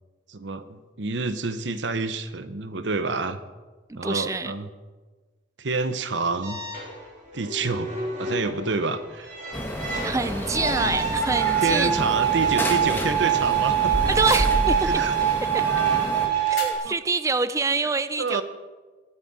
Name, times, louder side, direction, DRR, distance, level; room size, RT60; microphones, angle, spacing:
voice 1, 0.3-3.4 4.0-4.7 5.6-6.6 7.3-9.3 10.8-11.0 11.6-13.9 14.8-15.1 16.8-16.9 18.2-18.4, right 3 dB, 75° right, 11 dB, 0.9 m, -28 dB
voice 2, 3.9-4.5 10.0-11.9 14.1-14.9 15.5-15.6 16.5-18.4, right 4 dB, 15° right, 12 dB, 0.4 m, -26 dB
sound 1, 6.4-16.7, right 8 dB, 45° right, 3.4 m, -25 dB
sound 2, 9.5-16.3, equal, 10° left, 1.4 m, -29 dB
sound 3, 14.3-14.8 16.5-17.5, left 6 dB, 80° left, 5.0 m, -39 dB
21.5 x 9.9 x 4.2 m, 1.3 s
head